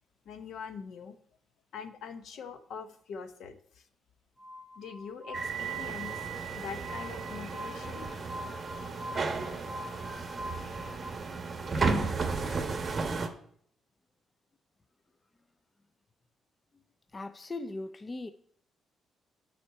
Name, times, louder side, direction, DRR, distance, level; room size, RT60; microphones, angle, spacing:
voice 1, 0.2-1.2 1.7-3.9 4.8-6.2 6.6-8.1, left 6 dB, 70° left, 0.8 m, -43 dB
Glass, 4.4-11.1, equal, 20° right, 0.7 m, -44 dB
sound 1, 5.3-13.3, right 4 dB, 35° right, 1.0 m, -34 dB
voice 2, 17.1-18.3, left 2 dB, 25° left, 0.4 m, -38 dB
8.3 x 4.4 x 5.6 m
cardioid pair, 90°, 0 cm